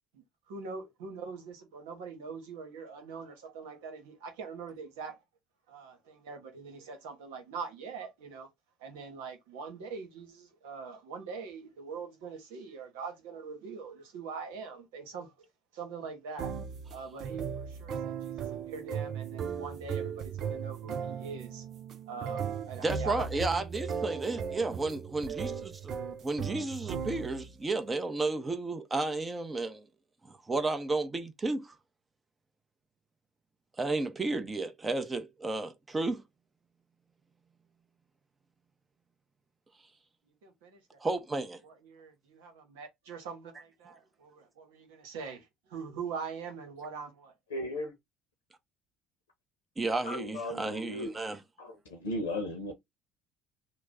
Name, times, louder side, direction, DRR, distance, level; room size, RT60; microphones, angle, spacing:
voice 1, 0.1-5.2 5.7-8.5 8.8-15.5 15.7-16.5 16.9-21.6 22.1-23.3 40.4-41.0 41.6-47.3, right 5 dB, 80° right, 1.2 m, -43 dB
sound 1, 16.4-27.6, right 7 dB, 55° right, 0.5 m, -37 dB
voice 2, 22.8-25.9 26.2-29.8 30.3-31.7 33.8-36.2 41.0-41.6 49.8-51.4, right 3 dB, 25° right, 0.9 m, -32 dB
voice 3, 47.5-47.9 50.0-51.1 51.6-52.7, left 1 dB, 90° left, 0.9 m, -36 dB
3.0 x 2.2 x 3.7 m
hypercardioid pair, 65°, 0 cm